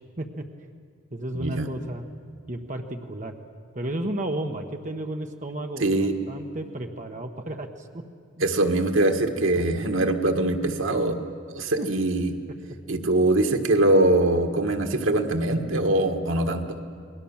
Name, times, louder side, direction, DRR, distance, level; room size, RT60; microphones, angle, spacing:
voice 1, 1.1-2.0 2.5-3.3 3.7-8.0 9.7-9.8 11.8-11.9 12.7-12.8, right 1 dB, 40° right, 4 dB, 1.2 m, -33 dB
voice 2, 5.8-6.1 8.4-11.2 11.5-12.3 12.9-16.8, right 2 dB, 90° right, 6 dB, 1.7 m, -22 dB
28.5 x 20.5 x 7.3 m, 2.2 s
head